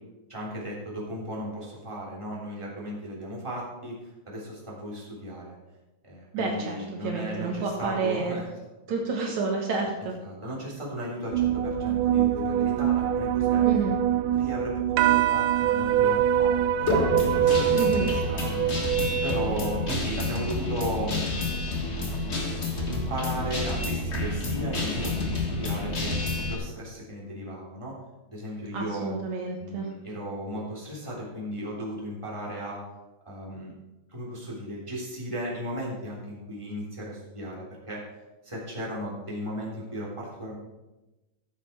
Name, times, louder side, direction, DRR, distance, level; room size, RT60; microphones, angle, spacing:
voice 1, 0.3-4.0 4.3-5.6 6.0-8.5 10.2-13.7 14.3-18.6 19.2-21.3 21.9-22.2 22.6-26.2 26.5-27.9 28.3-29.1 29.6-32.8 33.2-33.7 34.1-38.0 38.4-40.6, equal, 10° right, -5 dB, 3.3 m, -36 dB
voice 2, 6.3-8.4 8.9-10.1 13.6-14.0 17.7-18.2 28.7-29.9, right 4 dB, 70° right, 1 dB, 2.5 m, -30 dB
sound 1, 11.3-19.9, right 10 dB, 85° right, 2.1 m, -24 dB
Guitar, 16.9-26.5, left 2 dB, 35° left, 1.1 m, -29 dB
14.5 x 7.7 x 4.6 m, 1.1 s
omnidirectional pair, 3.6 m